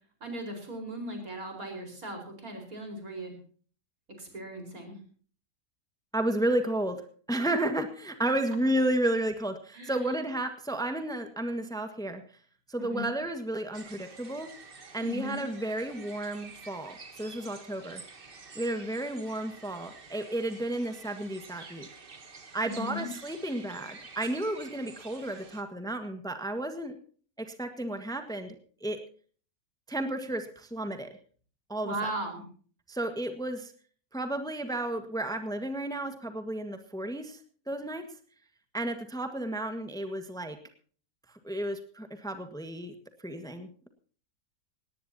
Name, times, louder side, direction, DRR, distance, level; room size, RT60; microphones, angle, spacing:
voice 1, 0.2-3.3 4.2-5.0 9.7-10.2 12.8-13.2 15.0-15.4 22.6-23.1 31.8-32.4, right 1 dB, 70° right, 4 dB, 5.2 m, -38 dB
voice 2, 6.1-7.0 7.3-12.2 12.7-14.5 14.9-18.0 18.5-21.9 22.5-27.0 27.4-28.5 28.8-29.0 29.9-31.1 31.7-32.1 32.9-33.7 34.1-37.4 37.7-38.1 38.7-40.6 41.4-42.9 43.2-43.9, right 1 dB, 5° left, 7 dB, 1.5 m, -32 dB
sound 1, 13.7-25.6, right 4 dB, 40° right, 1.7 m, -49 dB
18.5 x 18.5 x 2.8 m, 0.43 s
omnidirectional pair, 1.5 m